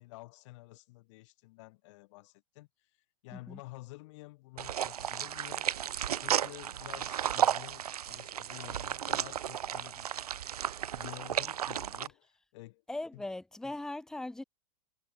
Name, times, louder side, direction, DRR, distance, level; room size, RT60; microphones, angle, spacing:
voice 1, 0.0-2.9 3.2-5.7 6.1-10.1 10.9-12.8 13.1-13.3, left 21 dB, 55° left, 2.1 m, -50 dB
sound 1, 4.6-12.1, right 10 dB, 90° right, 0.8 m, -33 dB
voice 2, 12.9-14.4, left 2 dB, 5° left, 0.9 m, -39 dB
hypercardioid pair, 130°, 19 cm